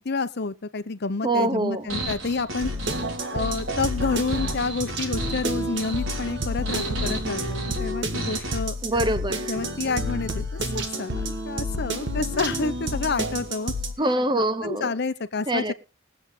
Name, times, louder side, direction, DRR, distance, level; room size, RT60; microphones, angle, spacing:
voice 1, 0.0-2.7 3.3-8.7 9.5-10.5 10.7-13.8 14.6-15.7, left 4 dB, 55° left, 0.8 m, -29 dB
voice 2, 1.2-1.9 8.8-9.5 14.0-14.9 15.5-15.7, right 1 dB, 25° right, 0.9 m, -24 dB
sound 1, 1.9-8.6, right 2 dB, 85° right, 3.2 m, -34 dB
sound 2, 2.6-13.9, equal, 60° right, 1.7 m, -29 dB
21.5 x 8.0 x 3.3 m
head